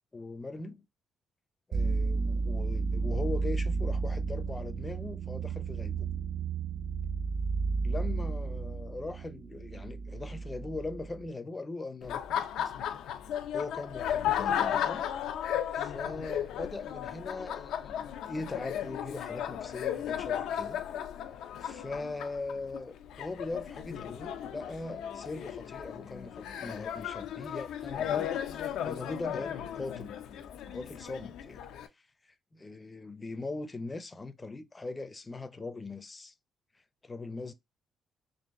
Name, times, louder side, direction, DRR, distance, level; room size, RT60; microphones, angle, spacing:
voice 1, 0.1-0.9 1.7-6.1 7.8-12.5 13.5-15.1 15.7-20.8 21.6-28.3 28.8-30.2 30.7-31.6 32.2-36.3 37.0-37.5, left 3 dB, 20° left, 0.5 m, -40 dB
sound 1, 1.7-11.3, right 4 dB, 60° right, 0.6 m, -32 dB
Laughter, 12.0-31.9, left 9 dB, 90° left, 0.5 m, -35 dB
4.0 x 2.6 x 3.5 m
cardioid pair, 115°, 0 cm